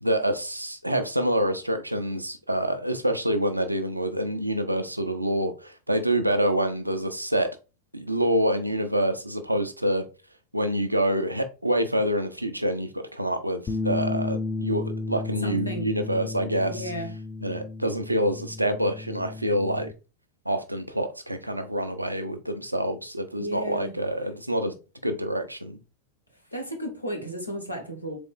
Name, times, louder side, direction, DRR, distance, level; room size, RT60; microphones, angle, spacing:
voice 1, 0.0-7.6 7.9-10.0 10.5-16.9 17.4-19.9 20.5-24.7 25.0-25.8, right 1 dB, 85° right, 0.5 m, -26 dB
Bass guitar, 13.7-19.9, left 3 dB, 15° left, 0.4 m, -33 dB
voice 2, 15.4-15.9 16.7-17.1 23.4-23.9 26.5-28.2, right 1 dB, 90° left, 1.1 m, -33 dB
3.8 x 3.4 x 3.6 m
figure-of-eight pair, 90°, 0 cm